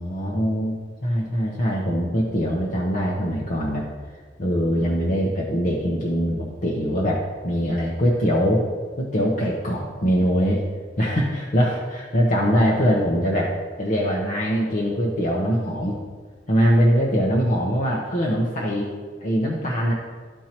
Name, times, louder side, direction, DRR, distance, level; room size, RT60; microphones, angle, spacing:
voice 1, 0.0-3.9 4.4-8.6 9.0-10.7 11.0-13.5 13.8-16.0 16.5-18.9 19.2-19.9, equal, 50° left, -4 dB, 0.9 m, -22 dB
13.0 x 4.5 x 3.0 m, 1.5 s
head